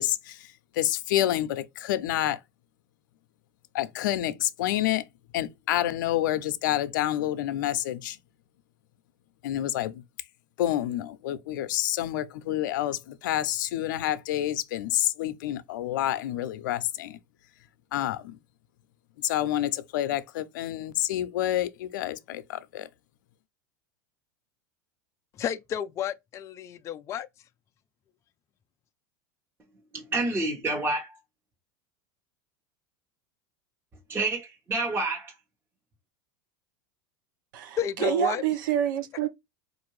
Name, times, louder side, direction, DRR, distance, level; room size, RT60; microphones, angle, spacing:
voice 1, 0.0-2.4 3.7-5.0 5.3-8.2 9.4-10.0 10.6-17.2 17.9-18.4 19.2-22.9, left 13 dB, 80° left, 0.5 m, -28 dB
voice 2, 25.4-27.3 37.8-38.4, left 9 dB, 30° left, 0.3 m, -31 dB
voice 3, 29.9-31.1 34.1-35.3, right 2 dB, 20° right, 1.1 m, -28 dB
voice 4, 37.5-39.3, right 9 dB, 80° right, 0.7 m, -27 dB
4.5 x 2.5 x 3.1 m
supercardioid pair, 125°, 10 cm